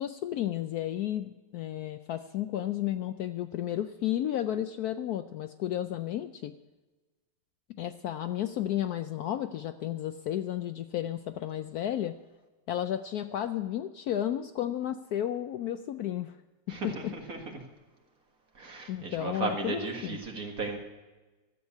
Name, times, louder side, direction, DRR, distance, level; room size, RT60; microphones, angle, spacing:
voice 1, 0.0-6.5 7.8-12.2 12.7-16.3 16.7-17.1 18.9-20.2, left 11 dB, 70° left, 10 dB, 0.9 m, -33 dB
voice 2, 16.7-17.6 18.6-20.8, right 3 dB, 50° right, 2 dB, 2.2 m, -35 dB
13.0 x 8.0 x 8.3 m, 1.2 s
omnidirectional pair, 2.0 m